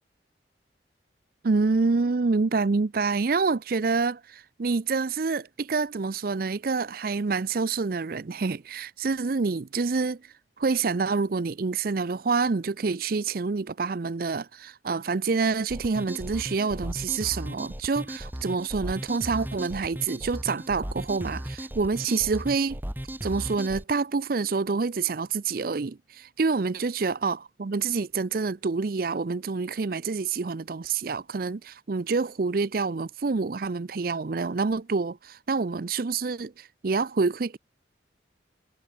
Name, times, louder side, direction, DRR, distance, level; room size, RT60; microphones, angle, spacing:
voice 1, 1.4-10.2 10.6-22.8 23.2-37.6, right 4 dB, 50° right, 0.5 m, -27 dB
sound 1, 15.7-23.8, equal, 10° right, 1.2 m, -36 dB
head